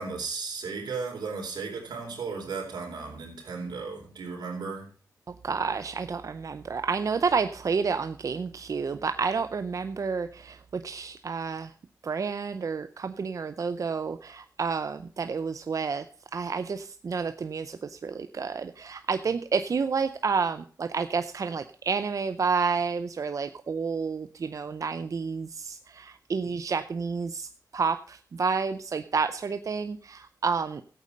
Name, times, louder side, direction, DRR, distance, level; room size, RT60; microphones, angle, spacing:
voice 1, 0.0-4.9, right 4 dB, 85° right, 1 dB, 4.2 m, -35 dB
voice 2, 5.3-11.7 12.0-16.1 16.3-30.8, right 5 dB, 55° right, 10 dB, 0.6 m, -30 dB
13.5 x 8.4 x 5.3 m, 0.43 s
cardioid pair, 80°, 7 cm